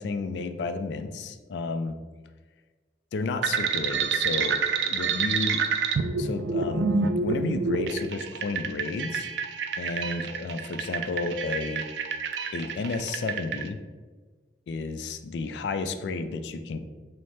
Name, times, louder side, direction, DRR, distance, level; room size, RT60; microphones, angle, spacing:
voice 1, 0.0-2.0 3.1-5.6 6.2-6.9 7.2-9.3 9.8-11.9 12.5-13.8 14.7-16.8, left 3 dB, 75° left, 9 dB, 0.3 m, -32 dB
sound 1, 3.4-13.6, right 5 dB, 70° right, 0.3 m, -28 dB
5.5 x 2.1 x 3.2 m, 1.4 s
head